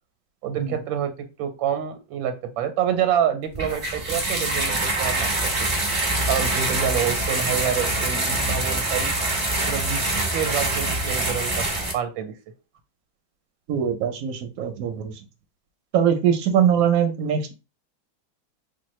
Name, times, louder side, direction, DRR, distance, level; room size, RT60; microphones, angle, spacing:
voice 1, 0.4-1.1 1.4-5.7 6.3-9.1 9.7-11.7 11.9-12.3, right 8 dB, 85° right, 7 dB, 1.4 m, -27 dB
sound 1, 3.5-11.9, right 2 dB, 25° right, 0.7 m, -25 dB
voice 2, 13.7-15.1 15.9-17.5, right 8 dB, 65° right, 5 dB, 0.9 m, -22 dB
4.5 x 2.2 x 3.1 m, 0.29 s
omnidirectional pair, 2.1 m